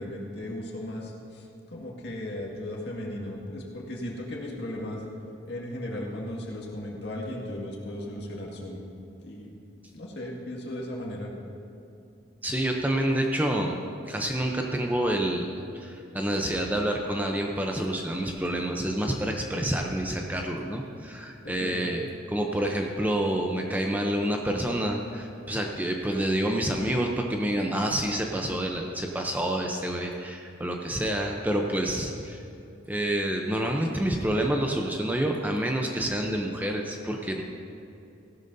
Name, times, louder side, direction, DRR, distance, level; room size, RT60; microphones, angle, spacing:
voice 1, 0.0-5.0 5.5-8.9 9.2-9.5 9.9-11.3 21.4-22.0, left 1 dB, 60° left, -3 dB, 2.0 m, -36 dB
voice 2, 12.4-13.8 14.1-22.0 22.3-32.4 32.9-37.4, right 1 dB, 10° right, 1 dB, 0.6 m, -28 dB
16.5 x 12.0 x 2.7 m, 2.7 s
head